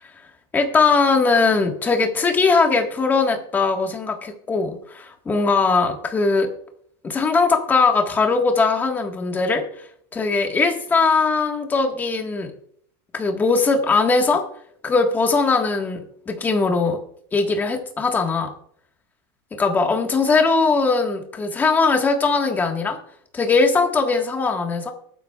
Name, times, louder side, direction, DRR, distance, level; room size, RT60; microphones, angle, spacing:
voice 1, 0.5-6.5 7.0-9.6 10.1-12.5 13.1-14.4 14.8-16.0 16.3-17.0 17.3-18.5 19.6-23.0 23.3-24.9, left 4 dB, 15° left, 4 dB, 1.5 m, -20 dB
20.0 x 10.0 x 2.4 m, 0.63 s
supercardioid pair, 165°, 12 cm